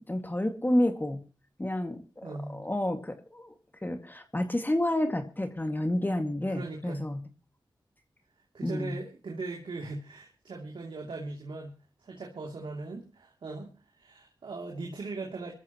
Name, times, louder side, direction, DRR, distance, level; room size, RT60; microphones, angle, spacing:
voice 1, 0.1-1.2 1.6-3.5 3.8-7.2 8.6-9.0, left 1 dB, 20° left, 6 dB, 2.0 m, -30 dB
voice 2, 2.2-2.6 6.5-7.1 8.5-13.7 14.0-15.5, right 3 dB, 80° right, 0 dB, 2.7 m, -39 dB
23.5 x 14.0 x 3.0 m, 0.32 s
cardioid pair, 45°, 8 cm